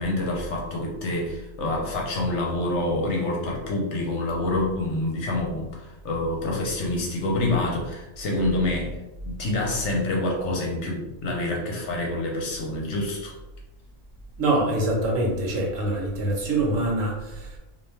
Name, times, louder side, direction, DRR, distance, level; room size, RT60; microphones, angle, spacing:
voice 1, 0.0-9.0 9.2-13.3, left 2 dB, 65° left, -1 dB, 0.9 m, -27 dB
voice 2, 14.4-17.6, right 2 dB, 70° right, -1 dB, 1.1 m, -25 dB
2.5 x 2.2 x 3.1 m, 1.0 s
omnidirectional pair, 1.4 m